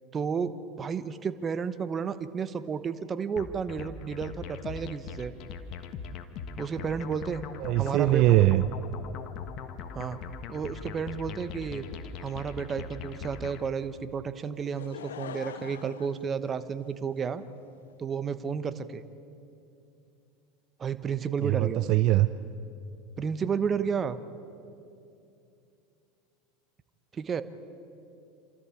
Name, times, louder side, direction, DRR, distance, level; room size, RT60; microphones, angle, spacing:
voice 1, 0.1-5.3 6.6-7.4 7.8-8.2 9.9-10.2 10.5-11.9 12.2-17.4 18.0-19.0 20.8-21.8 23.2-24.2 27.1-27.4, right 6 dB, 30° right, 11 dB, 1.2 m, -32 dB
sound 1, 3.4-13.7, left 6 dB, 50° left, 1.5 m, -41 dB
voice 2, 7.6-8.6 21.4-22.3, right 16 dB, 55° right, 12 dB, 0.6 m, -22 dB
Laughter / Crowd, 14.6-17.2 17.9-18.0, left 9 dB, 85° left, 0.7 m, -43 dB
28.0 x 13.5 x 8.5 m, 2.6 s
hypercardioid pair, 100°, 0 cm